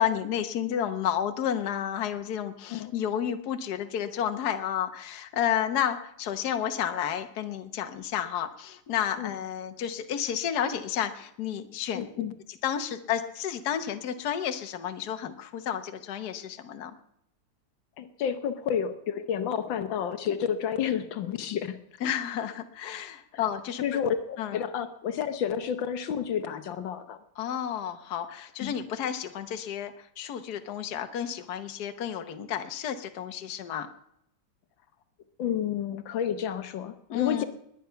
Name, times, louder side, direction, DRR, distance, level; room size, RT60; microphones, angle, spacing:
voice 1, 0.0-12.1 12.5-17.0 22.0-23.8 24.4-24.6 27.4-33.9 37.1-37.4, left 9 dB, 60° left, 8 dB, 1.5 m, -31 dB
voice 2, 11.9-12.3 18.0-22.1 23.8-27.2 28.6-28.8 35.4-37.4, left 8 dB, 80° left, 10 dB, 1.7 m, -30 dB
21.0 x 9.5 x 5.7 m, 0.73 s
omnidirectional pair, 2.0 m